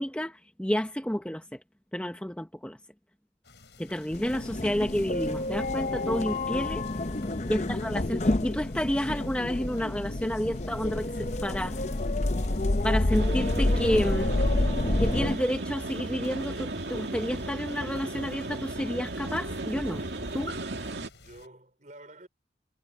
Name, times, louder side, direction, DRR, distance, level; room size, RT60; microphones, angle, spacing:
voice 1, 0.0-1.4 1.9-2.8 3.8-6.8 7.5-11.8 12.8-14.3 15.0-20.0 20.3-20.5, equal, 5° left, 0.8 m, -30 dB
sound 1, 3.4-21.5, left 2 dB, 85° left, 5.2 m, -52 dB
sound 2, 4.1-15.3, left 2 dB, 40° left, 0.8 m, -28 dB
voice 2, 6.9-7.3 21.1-22.3, right 1 dB, 45° right, 5.2 m, -51 dB
sound 3, 13.1-21.1, right 2 dB, 85° right, 2.4 m, -35 dB
head